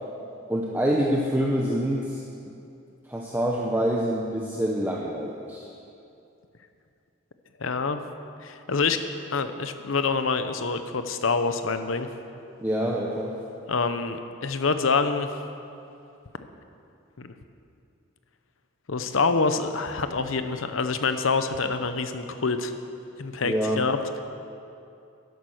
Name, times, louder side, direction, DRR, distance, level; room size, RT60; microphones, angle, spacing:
voice 1, 0.5-2.2 3.1-5.7 12.6-13.4 23.4-23.8, equal, 10° right, -2 dB, 0.8 m, -26 dB
voice 2, 7.6-8.0 8.4-9.0 9.3-12.1 13.7-15.3 17.2-17.3 18.9-22.7 23.2-24.0, left 4 dB, 85° left, 9 dB, 0.8 m, -26 dB
12.0 x 11.0 x 6.5 m, 2.6 s
head